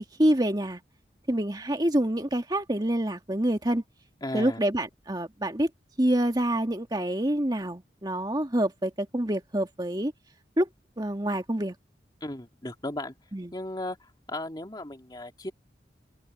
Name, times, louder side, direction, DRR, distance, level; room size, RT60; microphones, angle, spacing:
voice 1, 0.2-0.8 1.3-3.8 4.3-5.7 6.0-10.1 10.6-10.7 11.0-11.7 13.3-13.5, right 1 dB, 25° right, 2.1 m, -26 dB
voice 2, 4.2-4.6 12.2-13.1 13.5-15.5, left 1 dB, 25° left, 2.5 m, -36 dB
open air
head